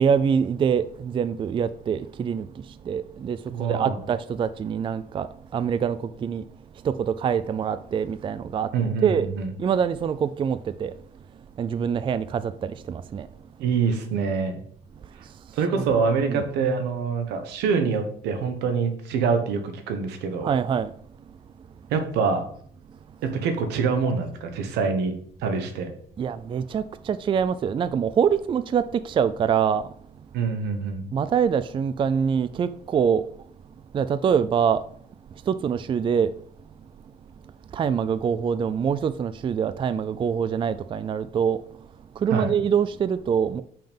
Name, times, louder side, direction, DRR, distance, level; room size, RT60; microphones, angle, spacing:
voice 1, 0.0-2.5 2.9-3.4 3.7-5.3 5.5-6.4 6.8-8.7 9.0-9.3 9.6-10.9 11.6-12.5 12.9-13.3 15.7-15.9 16.3-16.4 20.4-20.9 26.2-29.8 31.1-33.2 33.9-34.8 35.5-36.3 37.7-41.6 42.2-43.6, right 7 dB, 30° right, 0.4 m, -24 dB
voice 2, 3.5-4.0 8.7-9.5 13.6-14.6 15.5-20.5 21.9-22.5 23.2-25.1 25.4-25.9 30.3-31.1 42.3-42.5, right 5 dB, 85° right, 1.2 m, -25 dB
5.8 x 5.2 x 5.3 m
cardioid pair, 110°, 17 cm